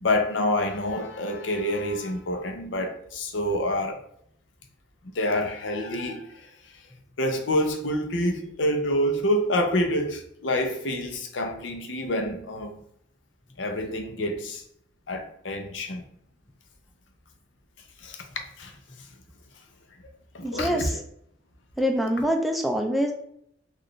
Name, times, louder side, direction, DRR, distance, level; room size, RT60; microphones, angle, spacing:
voice 1, 0.0-4.0 5.0-6.8 7.2-12.7 13.6-14.6 15.1-16.1 18.0-18.3 18.6-19.1 20.3-21.0, left 1 dB, 75° left, 0.6 m, -27 dB
voice 2, 20.4-20.8 21.8-23.1, equal, ahead, 0.3 m, -24 dB
3.9 x 2.5 x 3.1 m
head